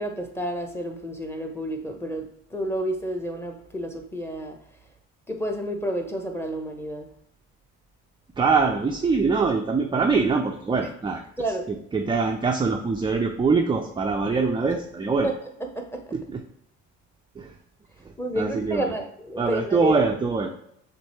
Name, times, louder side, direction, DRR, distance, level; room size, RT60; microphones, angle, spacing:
voice 1, 0.0-4.6 5.3-7.1 10.8-10.9 11.4-11.6 15.2-15.3 15.6-16.2 18.2-20.0, equal, 5° left, 3 dB, 0.8 m, -30 dB
voice 2, 8.4-11.2 11.7-15.3 16.1-16.4 17.4-17.5 18.3-18.9 19.4-20.5, right 4 dB, 15° right, 2 dB, 0.4 m, -23 dB
6.2 x 2.6 x 3.0 m, 0.72 s
supercardioid pair, 80°, 36 cm